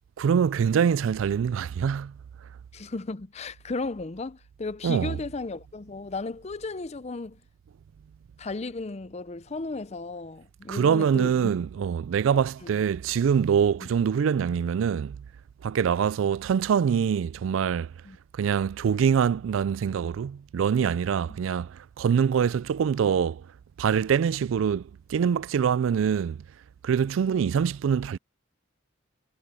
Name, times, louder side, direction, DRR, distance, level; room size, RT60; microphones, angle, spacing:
voice 1, 0.2-2.1 4.8-5.2 10.7-15.2 15.6-17.9 18.4-23.4 23.8-26.4 26.8-28.2, right 7 dB, 80° right, 0.3 m, -24 dB
voice 2, 2.7-7.4 8.4-11.5 12.3-12.8 13.8-13.9 18.0-18.2 21.3-21.4, left 3 dB, 35° left, 0.5 m, -35 dB
head